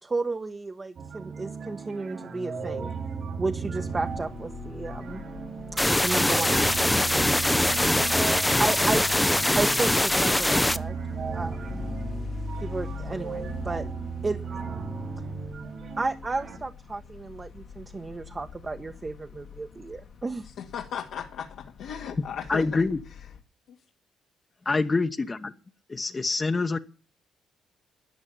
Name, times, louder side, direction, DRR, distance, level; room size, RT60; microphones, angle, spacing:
voice 1, 0.0-2.9 3.4-5.2 5.9-7.0 7.5-8.0 8.6-9.2 9.5-11.0 11.3-11.8 12.6-13.9 14.2-14.4 16.0-20.5, right 3 dB, 25° right, 6 dB, 1.1 m, -33 dB
sound 1, 1.0-16.6, right 5 dB, 55° right, 3.1 m, -36 dB
sound 2, 3.9-23.4, left 5 dB, 55° left, 1.6 m, -43 dB
sound 3, 5.8-10.8, left 1 dB, 10° left, 0.7 m, -23 dB
voice 2, 20.6-22.8, left 8 dB, 80° left, -1 dB, 2.0 m, -36 dB
voice 3, 22.5-23.0 24.6-25.5 25.9-26.8, left 3 dB, 30° left, 7 dB, 1.1 m, -25 dB
13.5 x 9.7 x 8.5 m, 0.37 s
cardioid pair, 85°, 0 cm